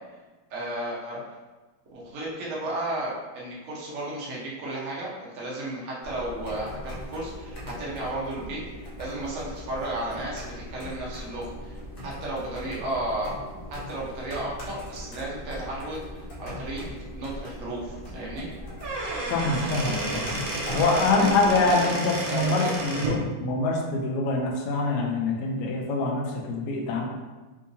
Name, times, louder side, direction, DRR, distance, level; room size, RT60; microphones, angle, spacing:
voice 1, 0.5-1.2 1.9-10.4 10.7-13.4 13.9-18.5 20.8-21.9 22.3-22.8, right 1 dB, 55° right, -6 dB, 0.9 m, -33 dB
sound 1, 6.0-21.8, left 1 dB, 55° left, 0.6 m, -40 dB
Squeak / Wood, 18.6-23.2, right 2 dB, 90° right, 1.6 m, -31 dB
voice 2, 19.3-20.3 20.7-27.0, left 3 dB, 75° left, 0 dB, 1.1 m, -25 dB
3.5 x 2.7 x 2.7 m, 1.2 s
omnidirectional pair, 2.1 m